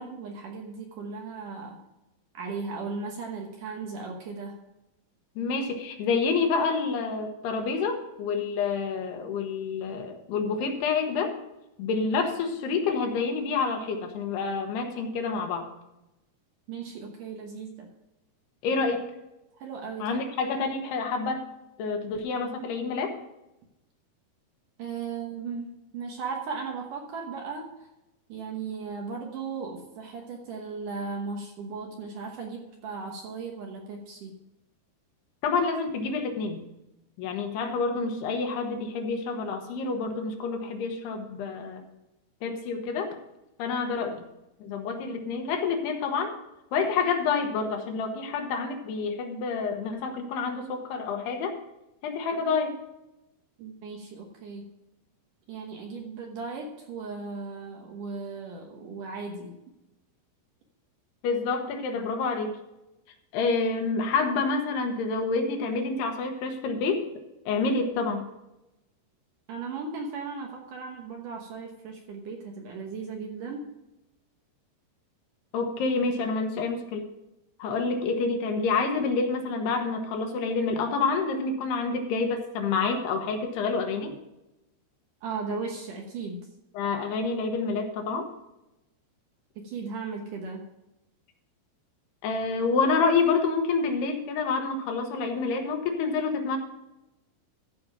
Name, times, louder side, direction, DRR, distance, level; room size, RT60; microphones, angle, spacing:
voice 1, 0.0-1.8 2.3-4.6 16.7-17.9 19.6-20.2 24.8-27.7 28.3-34.3 53.6-54.7 55.5-59.6 69.5-73.6 85.2-86.5 89.6-90.6, right 4 dB, 65° right, 1 dB, 2.3 m, -36 dB
voice 2, 5.4-11.4 11.8-15.7 18.6-19.1 20.0-21.5 21.8-23.1 35.4-36.6 37.2-41.8 42.4-43.2 43.6-44.2 44.6-46.4 46.7-51.6 52.0-52.8 61.2-62.6 63.3-67.1 67.5-68.3 75.5-77.0 77.6-84.1 86.7-88.3 92.2-96.6, left 4 dB, 75° left, 4 dB, 3.1 m, -28 dB
14.5 x 5.2 x 5.9 m, 0.93 s
omnidirectional pair, 4.8 m